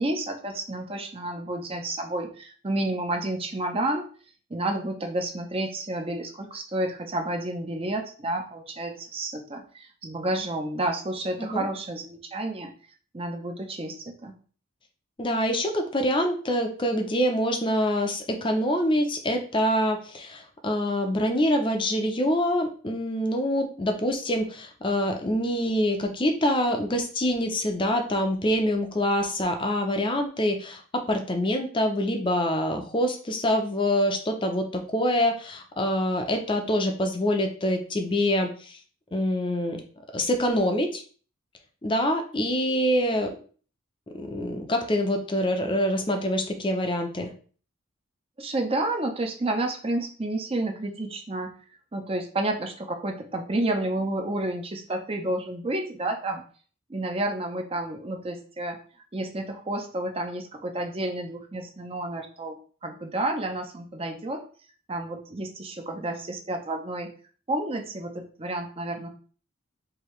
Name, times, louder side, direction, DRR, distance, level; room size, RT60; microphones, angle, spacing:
voice 1, 0.0-4.1 4.5-12.7 13.1-14.4 48.4-51.5 51.9-56.4 56.9-58.8 59.1-64.4 64.9-67.1 67.5-69.1, right 1 dB, 25° right, 3 dB, 0.5 m, -30 dB
voice 2, 15.2-38.8 39.1-39.8 40.1-41.0 41.8-43.4 44.1-47.3, equal, 25° left, 4 dB, 0.5 m, -25 dB
4.7 x 2.7 x 3.1 m, 0.42 s
head